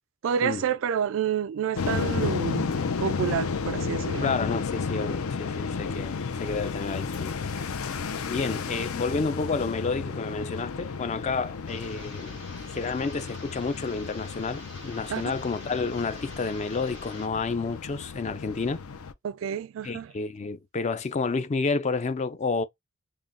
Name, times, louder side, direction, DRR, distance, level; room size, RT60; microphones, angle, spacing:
voice 1, 0.2-2.7 3.0-4.3 7.6-7.7 15.1-15.3 19.2-20.1, right 8 dB, 65° right, 0.3 m, -29 dB
sound 1, 1.8-19.1, left 5 dB, 80° left, 0.6 m, -32 dB
voice 2, 4.2-7.3 8.3-12.4 12.7-18.8 19.8-22.6, left 4 dB, 30° left, 0.4 m, -30 dB
sound 2, 11.7-17.3, left 2 dB, 55° left, 1.9 m, -46 dB
3.6 x 2.2 x 3.8 m
head